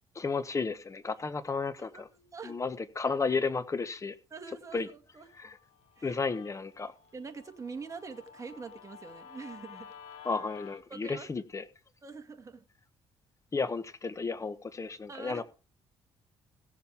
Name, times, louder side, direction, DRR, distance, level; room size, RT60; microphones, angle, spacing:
voice 1, 0.1-2.1 2.4-4.1 4.7-4.9 5.3-5.6 6.0-6.9 10.2-11.6 13.5-15.4, left 4 dB, 30° left, 1.3 m, -33 dB
voice 2, 1.8-2.6 4.3-5.3 6.0-6.2 7.1-9.9 10.9-11.3 12.0-12.7 15.1-15.4, right 4 dB, 30° right, 2.1 m, -44 dB
Guitar, 5.3-10.8, left 8 dB, 90° left, 1.2 m, -52 dB
17.0 x 7.2 x 3.6 m
cardioid pair, 85°, 11 cm